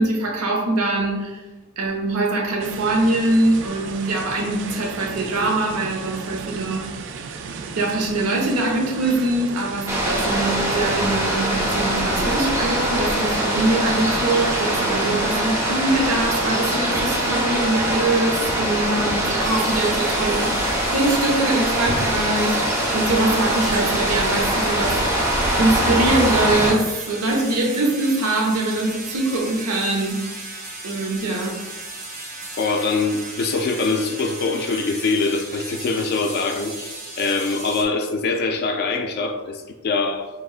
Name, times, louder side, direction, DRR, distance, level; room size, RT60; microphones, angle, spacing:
voice 1, 0.0-1.4 1.8-6.9 7.8-25.0 25.6-30.2 30.8-31.6, right 2 dB, 85° right, 0 dB, 0.9 m, -23 dB
sound 1, 2.6-18.0, right 5 dB, 55° right, 0.3 m, -35 dB
sound 2, 9.9-26.7, right 1 dB, 15° right, 0.7 m, -22 dB
sound 3, 19.4-37.8, right 2 dB, 35° right, 0.9 m, -36 dB
voice 2, 32.6-40.3, left 3 dB, 45° left, 4 dB, 0.3 m, -23 dB
4.9 x 3.0 x 2.4 m, 1.2 s
head